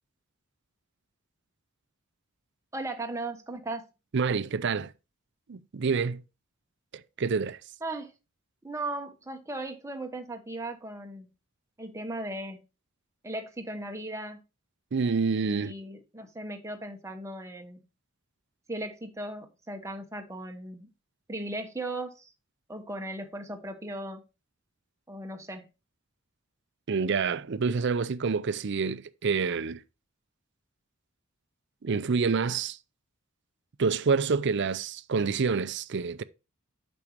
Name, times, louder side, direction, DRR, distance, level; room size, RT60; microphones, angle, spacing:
voice 1, 2.7-3.9 7.8-8.1 8.6-11.3 11.8-12.6 13.2-14.4 15.4-17.8 18.7-20.9 21.3-22.3 22.7-24.2 25.1-25.7, right 2 dB, 15° right, 1.0 m, -37 dB
voice 2, 4.1-4.9 5.5-6.2 6.9-7.6 14.9-15.7 26.9-29.8 31.8-32.8 33.8-36.2, right 5 dB, 55° right, 0.5 m, -27 dB
8.7 x 6.2 x 3.0 m
head